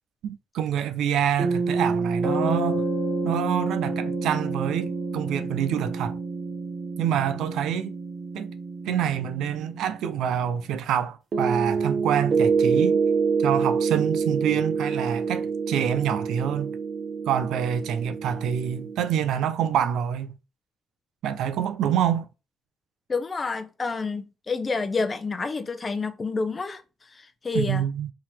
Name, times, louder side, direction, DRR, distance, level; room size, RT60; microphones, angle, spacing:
voice 1, 0.2-2.8 3.2-6.2 7.0-7.9 8.3-8.5 8.9-13.0 13.4-16.8 17.3-20.4 21.2-22.3 27.5-28.1, right 9 dB, 80° right, 0.5 m, -26 dB
sound 1, 1.4-10.1 11.3-19.0, right 4 dB, 50° right, 1.1 m, -27 dB
voice 2, 23.1-26.8 27.4-27.8, left 4 dB, 30° left, 0.8 m, -28 dB
3.8 x 2.9 x 4.3 m
cardioid pair, 90°, 0 cm